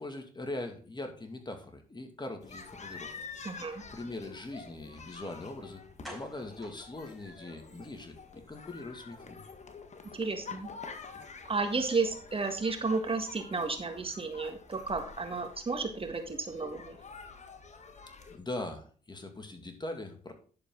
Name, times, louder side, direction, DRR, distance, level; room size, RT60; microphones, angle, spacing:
voice 1, 0.0-3.1 3.9-5.8 6.1-9.4 18.3-20.3, left 2 dB, 25° left, 5 dB, 2.4 m, -41 dB
sound 1, 2.4-18.4, left 5 dB, 40° left, 1.7 m, -48 dB
voice 2, 3.5-3.8 10.1-10.7 11.5-17.0, right 4 dB, 35° right, 5 dB, 1.8 m, -32 dB
sound 2, 6.0-7.8 8.2-8.3 8.6-8.8 9.0-9.1, equal, ahead, 5.1 m, -50 dB
11.0 x 6.8 x 3.9 m, 0.41 s
supercardioid pair, 55°, 17 cm